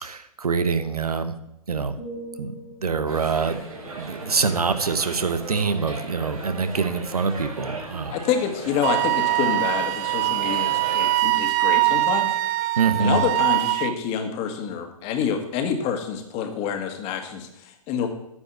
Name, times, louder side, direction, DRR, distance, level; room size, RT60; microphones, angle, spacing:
voice 1, 0.0-1.3 1.7-2.0 2.4-2.5 2.8-3.7 4.0-8.2 12.8-13.2, right 5 dB, 85° right, 11 dB, 1.0 m, -25 dB
sound 1, 2.0-5.9 6.4-6.7, right 1 dB, 85° left, 2.9 m, -44 dB
sound 2, 3.1-11.2, right 2 dB, 70° right, 3.9 m, -37 dB
voice 2, 8.1-18.1, left 7 dB, 35° left, 5 dB, 1.9 m, -27 dB
Wind instrument woodwind instrument, 8.8-13.9, right 18 dB, 30° right, 0.3 m, -22 dB
9.6 x 5.5 x 8.0 m, 0.81 s
figure-of-eight pair, 115°, 19 cm